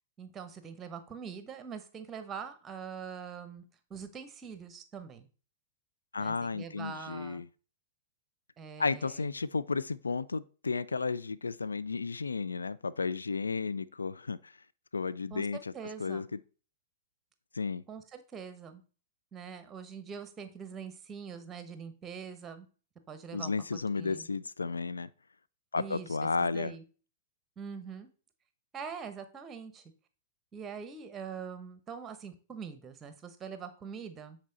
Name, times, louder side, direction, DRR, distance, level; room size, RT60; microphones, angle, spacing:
voice 1, 0.2-5.3 6.2-7.4 8.6-9.3 15.3-15.5 15.7-16.3 17.9-18.8 19.3-22.7 23.1-24.3 25.8-26.8 27.6-28.1 28.7-29.9 30.5-34.4, right 6 dB, 20° right, 1.0 m, -43 dB
voice 2, 6.1-7.5 8.8-14.5 14.9-15.7 16.0-16.4 17.5-17.8 23.3-25.1 25.7-26.7, left 4 dB, 75° left, 0.4 m, -33 dB
8.5 x 4.4 x 4.0 m
figure-of-eight pair, 100°, 0 cm